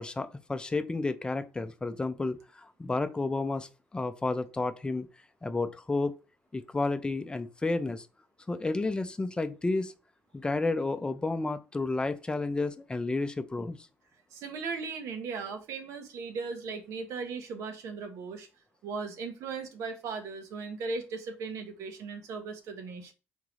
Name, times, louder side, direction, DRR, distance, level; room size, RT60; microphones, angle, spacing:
voice 1, 0.0-5.1 5.4-6.1 6.5-8.1 8.5-9.9 10.3-13.8, left 3 dB, 15° left, 0.5 m, -31 dB
voice 2, 14.3-18.5 18.8-23.1, right 4 dB, 70° right, 0.9 m, -37 dB
3.7 x 3.6 x 3.2 m
supercardioid pair, 80°, 5 cm